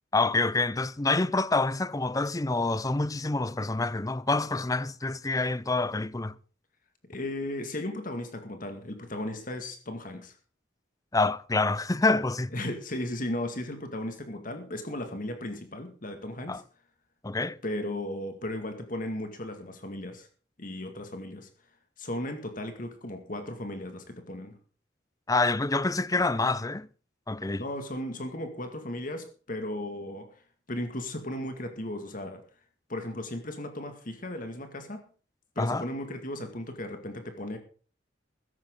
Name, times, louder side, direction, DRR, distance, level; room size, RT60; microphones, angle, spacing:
voice 1, 0.1-6.3 11.1-12.5 16.5-16.6 17.2-17.6 25.3-26.9 27.3-27.6 35.6-35.8, left 3 dB, 20° left, 0.6 m, -27 dB
voice 2, 7.1-10.4 12.5-16.6 17.6-20.3 20.6-21.5 22.0-24.6 27.6-30.4 30.7-32.4 32.9-35.1 35.6-37.6, left 1 dB, 45° left, 2.1 m, -36 dB
15.5 x 14.5 x 3.8 m
head